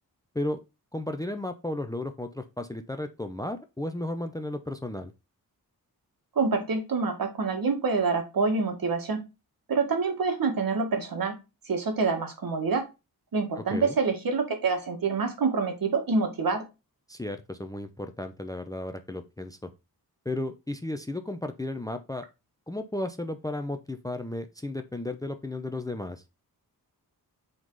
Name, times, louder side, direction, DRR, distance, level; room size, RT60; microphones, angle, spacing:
voice 1, 0.9-5.1 13.7-14.0 17.1-19.7 20.2-22.2 22.7-26.2, left 1 dB, 10° left, 0.6 m, -34 dB
voice 2, 6.4-9.2 9.7-11.4 11.7-12.9 13.3-16.7, right 4 dB, 65° right, 1.8 m, -26 dB
7.7 x 3.9 x 3.9 m
wide cardioid pair, 135°, 38 cm